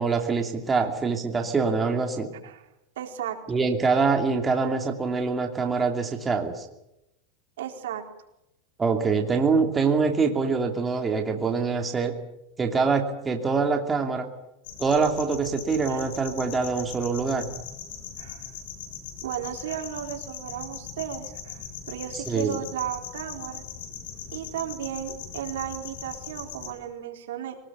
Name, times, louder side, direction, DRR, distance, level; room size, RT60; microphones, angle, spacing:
voice 1, 0.0-2.3 3.5-6.7 8.8-12.1 12.6-14.3 14.8-17.5 22.3-22.6, right 4 dB, 15° right, 3 dB, 2.8 m, -24 dB
voice 2, 3.0-3.4 7.6-8.0 15.9-16.0 18.2-18.5 19.2-23.6 24.3-27.6, right 10 dB, 90° right, 3 dB, 4.3 m, -34 dB
sound 1, 14.6-26.7, left 8 dB, 70° left, 7.2 m, -40 dB
23.0 x 20.0 x 8.5 m, 0.87 s
supercardioid pair, 150°, 0 cm